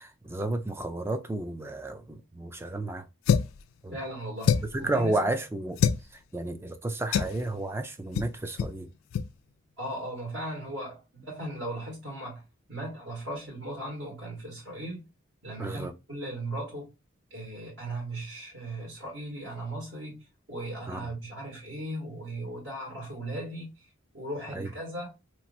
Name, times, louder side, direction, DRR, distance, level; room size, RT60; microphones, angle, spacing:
voice 1, 0.0-3.1 3.8-4.0 4.7-5.8 6.3-8.9 15.6-15.9 20.9-21.1 24.5-24.7, right 2 dB, 10° right, 0.3 m, -32 dB
sound 1, 3.3-3.6 4.4-4.8 5.8-6.0 7.1-7.4 8.1-8.3 8.6-8.8 9.1-9.3, left 7 dB, 90° left, 0.3 m, -25 dB
voice 2, 3.9-5.2 9.8-12.4 12.7-15.0 15.4-16.9 17.3-23.7 24.1-25.1, right 1 dB, 65° right, 1.7 m, -37 dB
3.1 x 2.5 x 2.6 m
head